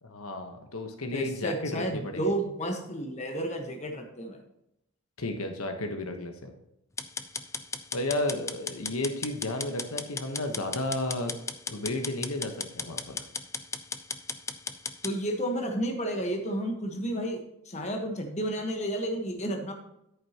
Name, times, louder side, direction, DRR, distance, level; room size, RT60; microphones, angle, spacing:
voice 1, 0.0-2.2 5.2-6.5 7.9-11.3 11.7-13.3, left 2 dB, 85° left, 5 dB, 1.2 m, -33 dB
voice 2, 1.1-4.4 15.0-17.4 17.6-19.7, right 1 dB, 30° left, 3 dB, 1.3 m, -31 dB
sound 1, 7.0-15.1, left 5 dB, 15° left, 0.4 m, -36 dB
10.5 x 9.1 x 2.9 m, 0.83 s
head